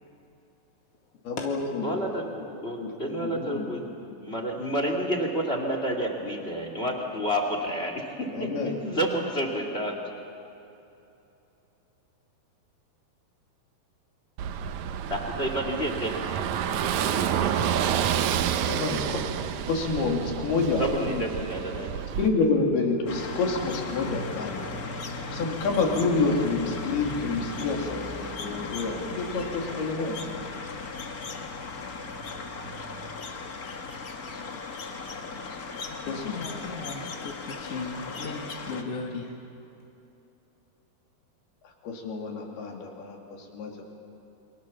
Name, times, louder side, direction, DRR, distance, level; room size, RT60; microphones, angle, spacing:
voice 1, 1.2-2.0 2.8-3.7 8.2-8.8 18.7-19.2 19.7-21.3 22.2-30.2 36.0-36.4 41.6-43.8, left 3 dB, 75° left, 0 dB, 4.9 m, -28 dB
voice 2, 1.8-3.8 4.2-10.0 15.1-17.5 20.8-22.0, equal, 20° left, 3 dB, 2.1 m, -30 dB
Car passing by / Engine, 14.4-22.3, right 9 dB, 80° right, 1.6 m, -29 dB
sound 1, 23.1-38.8, left 3 dB, 90° left, 0.8 m, -37 dB
voice 3, 36.0-39.3, left 4 dB, 45° left, -1 dB, 2.6 m, -36 dB
29.5 x 24.0 x 7.2 m, 2.9 s
omnidirectional pair, 4.6 m